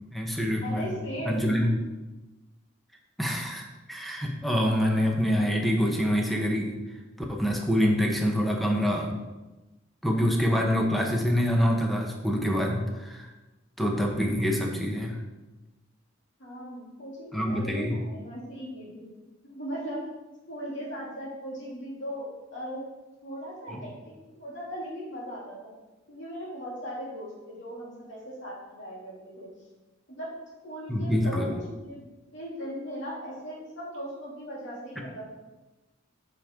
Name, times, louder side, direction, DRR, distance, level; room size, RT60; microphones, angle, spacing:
voice 1, 0.1-0.9 1.3-1.7 3.2-6.8 7.3-9.1 10.0-13.3 13.8-15.2 17.3-18.0 23.7-23.8 30.9-31.5, equal, ahead, 0 dB, 1.0 m, -26 dB
voice 2, 0.6-1.7 16.4-19.0 19.4-20.1 20.5-22.8 23.2-23.9 24.3-25.7 26.1-29.5 30.1-30.3 30.6-32.0 32.3-35.3, equal, 65° left, -5 dB, 2.7 m, -38 dB
8.2 x 5.1 x 3.7 m, 1.1 s
head